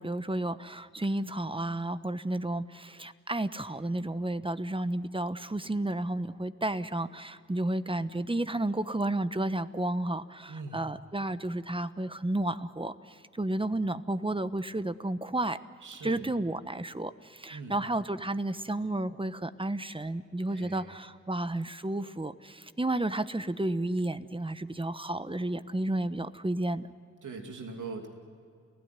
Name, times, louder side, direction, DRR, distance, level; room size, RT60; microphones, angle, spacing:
voice 1, 0.0-15.6 16.0-26.9, right 1 dB, 15° right, 12 dB, 1.1 m, -32 dB
voice 2, 10.5-10.9 15.8-16.3 17.5-17.8 20.5-21.0 27.2-28.1, right 4 dB, 85° right, 3 dB, 2.7 m, -41 dB
30.0 x 16.0 x 9.8 m, 2.3 s
cardioid pair, 45°, 30 cm